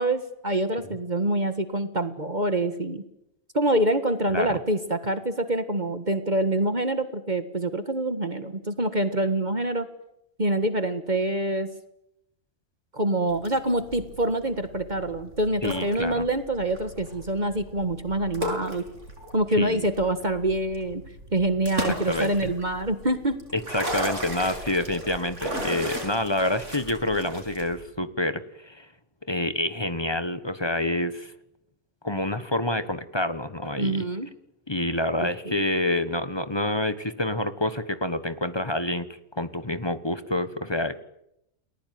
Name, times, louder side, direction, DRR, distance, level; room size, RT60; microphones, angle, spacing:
voice 1, 0.0-3.0 3.5-9.9 10.4-11.7 12.9-18.8 19.3-21.0 21.3-23.4 33.8-34.3 35.4-35.6, right 1 dB, 35° right, 10 dB, 1.8 m, -26 dB
voice 2, 4.3-4.6 15.6-16.2 19.6-19.8 22.1-22.5 23.5-28.9 29.3-31.3 32.0-34.0 34.7-39.1 39.3-41.0, left 1 dB, 20° left, 12 dB, 1.4 m, -27 dB
sound 1, 13.3-27.8, equal, 60° right, 7.6 m, -36 dB
29.5 x 20.5 x 9.5 m, 0.83 s
omnidirectional pair, 1.4 m